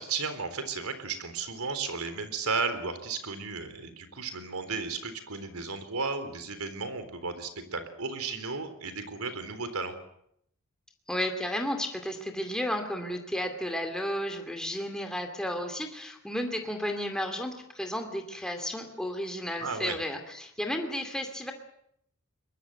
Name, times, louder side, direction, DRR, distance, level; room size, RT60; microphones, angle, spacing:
voice 1, 0.0-9.9 19.6-20.0, right 4 dB, 90° right, 9 dB, 3.8 m, -34 dB
voice 2, 11.1-21.5, equal, 5° left, 4 dB, 2.5 m, -33 dB
22.5 x 21.5 x 7.9 m, 0.74 s
head